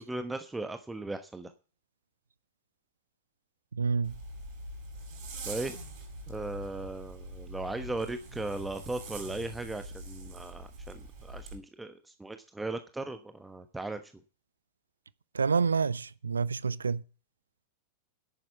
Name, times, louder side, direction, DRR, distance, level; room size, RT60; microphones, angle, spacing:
voice 1, 0.0-1.5 5.4-5.8 6.3-14.1, right 2 dB, 10° right, 1.1 m, -37 dB
voice 2, 3.8-4.1 15.3-17.0, right 5 dB, 75° right, 0.5 m, -28 dB
Zipper (clothing), 4.0-11.6, right 1 dB, 45° right, 7.6 m, -43 dB
11.0 x 9.0 x 7.1 m
figure-of-eight pair, 90°, 0 cm